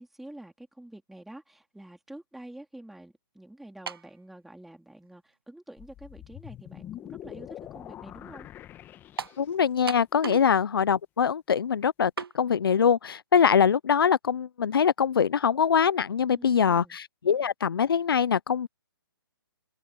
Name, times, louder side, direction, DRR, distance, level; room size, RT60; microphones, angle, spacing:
voice 1, 0.0-8.5 16.4-17.0, right 1 dB, ahead, 2.8 m, -47 dB
sound 1, 3.9-4.1 5.0-5.1 9.2-9.4 9.9-10.5 10.8-10.9 12.2-12.4, right 6 dB, 80° right, 1.2 m, -35 dB
sound 2, 5.8-9.8, left 12 dB, 15° left, 1.4 m, -44 dB
voice 2, 9.4-18.7, left 7 dB, 75° left, 0.6 m, -23 dB
open air
hypercardioid pair, 145°, 12 cm